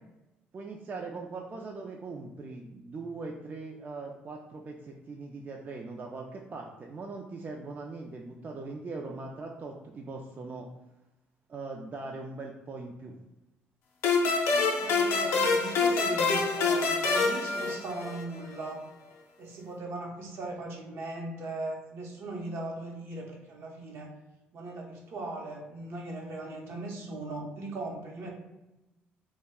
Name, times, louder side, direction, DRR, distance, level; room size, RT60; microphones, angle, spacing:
voice 1, 0.5-10.7 11.5-13.2, right 3 dB, 40° right, 1 dB, 0.3 m, -40 dB
sound 1, 14.0-18.4, left 4 dB, 75° left, 0.5 m, -26 dB
voice 2, 14.5-18.8 19.4-24.1 24.5-28.3, right 2 dB, 65° right, 0 dB, 0.7 m, -39 dB
2.2 x 2.1 x 3.5 m, 0.96 s
supercardioid pair, 75°, 5 cm